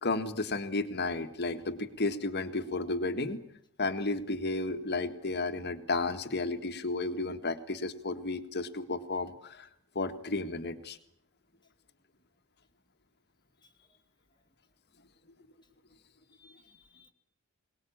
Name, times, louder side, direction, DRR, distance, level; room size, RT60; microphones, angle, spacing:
voice 1, 0.0-3.4 3.8-9.7 10.0-11.0, left 3 dB, 50° left, 9 dB, 1.8 m, -33 dB
voice 2, 13.6-14.0 16.3-17.1, left 4 dB, 20° left, 5 dB, 1.9 m, -62 dB
23.0 x 19.5 x 8.7 m, 0.69 s
head